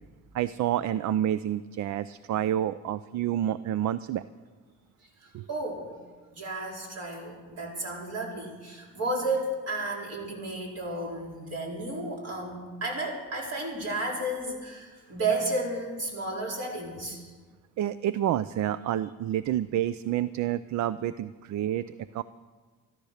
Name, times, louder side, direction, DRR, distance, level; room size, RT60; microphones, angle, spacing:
voice 1, 0.3-4.2 5.3-5.5 17.8-21.8 22.1-22.2, right 11 dB, 70° right, 16 dB, 0.5 m, -28 dB
voice 2, 5.2-5.9 6.3-17.3, right 2 dB, 55° right, -2 dB, 4.7 m, -32 dB
14.0 x 13.5 x 6.5 m, 1.4 s
cardioid pair, 90°, 30 cm